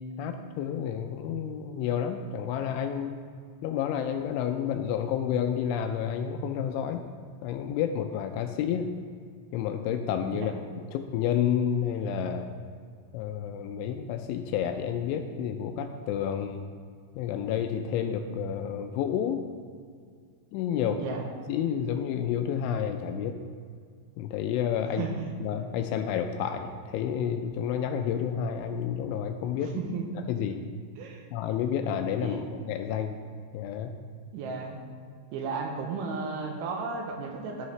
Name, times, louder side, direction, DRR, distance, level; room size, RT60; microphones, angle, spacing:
voice 1, 0.2-3.2 3.6-7.1 7.4-8.9 9.5-12.5 13.1-16.7 17.2-19.4 20.5-21.0 21.5-23.4 24.2-25.0 25.4-29.8 30.3-30.6 31.3-33.2 33.5-33.9, left 8 dB, 85° left, 6 dB, 2.8 m, -30 dB
voice 2, 21.0-21.3 25.0-25.1 29.7-30.0 31.0-31.2 32.2-32.4 34.3-34.8 35.3-37.7, right 4 dB, 80° right, 2 dB, 3.1 m, -34 dB
15.5 x 5.7 x 3.2 m, 2.1 s
omnidirectional pair, 5.7 m